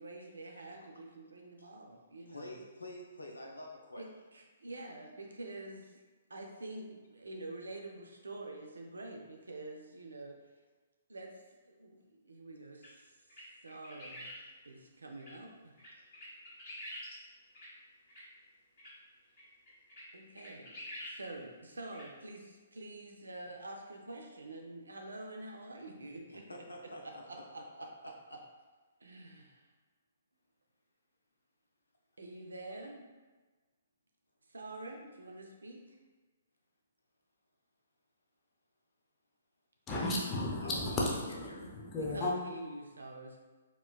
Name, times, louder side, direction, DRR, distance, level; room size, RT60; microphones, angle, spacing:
voice 1, 0.0-2.6 4.0-6.0 6.3-10.4 11.1-14.3 14.6-15.8 20.1-26.5 27.0-27.9 28.3-28.4 29.0-29.7 32.2-33.1 34.5-35.8 42.0-43.4, right 2 dB, 80° right, 1 dB, 0.5 m, -47 dB
voice 2, 2.3-4.1 26.3-27.6 28.0-28.1 40.6-41.0 41.5-41.7, left 1 dB, 85° left, 0 dB, 0.5 m, -48 dB
sound 1, 12.8-12.9 13.3-14.4 15.2-15.3 15.8-17.1 17.5-17.7 18.1-18.2 18.8-18.9 19.4-19.5 19.7-20.0 20.4-21.1 21.4-21.5 21.9-22.0, left 1 dB, 45° left, 1.3 m, -46 dB
voice 3, 39.9-42.3, left 2 dB, 20° left, -4 dB, 0.7 m, -34 dB
4.2 x 2.2 x 2.3 m, 1.3 s
figure-of-eight pair, 125°, 0 cm